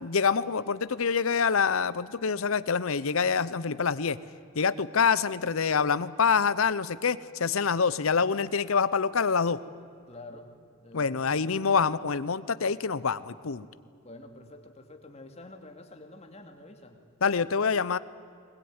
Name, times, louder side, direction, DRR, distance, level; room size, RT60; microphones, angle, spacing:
voice 1, 0.0-4.2 4.5-9.6 10.9-13.7 17.2-18.0, left 5 dB, 75° left, 16 dB, 0.7 m, -26 dB
voice 2, 10.1-10.5 10.8-11.3 14.0-17.0, left 2 dB, 30° left, 4 dB, 2.4 m, -48 dB
21.0 x 21.0 x 9.6 m, 2.3 s
head